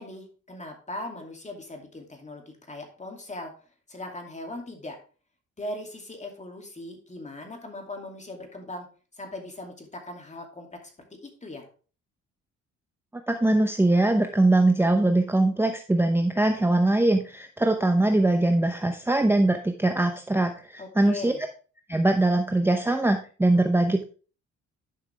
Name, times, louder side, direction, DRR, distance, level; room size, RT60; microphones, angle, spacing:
voice 1, 0.0-3.5 3.9-5.0 5.6-8.9 9.2-10.9 11.2-11.7 20.8-21.4, left 2 dB, 25° left, 3 dB, 2.5 m, -39 dB
voice 2, 13.3-21.3 21.9-24.0, right 2 dB, 10° right, 6 dB, 0.8 m, -22 dB
10.5 x 5.8 x 3.4 m, 0.38 s
cardioid pair, 90°, 30 cm